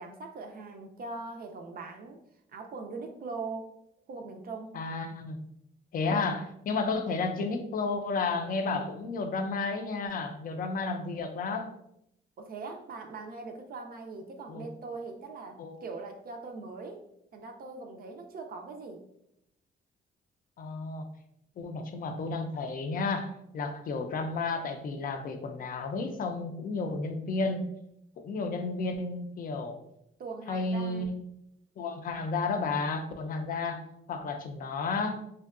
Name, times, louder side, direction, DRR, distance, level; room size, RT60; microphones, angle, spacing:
voice 1, 0.0-2.2 2.5-3.7 4.1-4.8 12.4-17.0 17.3-19.0 30.2-31.1, right 3 dB, 50° right, 3 dB, 0.4 m, -41 dB
voice 2, 4.7-5.4 5.9-11.7 14.5-14.7 15.6-15.8 20.6-21.1 21.6-27.7 28.2-29.8 30.5-31.2 31.8-33.8 34.1-35.2, left 3 dB, 45° left, 6 dB, 0.4 m, -32 dB
2.6 x 2.1 x 2.4 m, 0.78 s
cardioid pair, 90°, 20 cm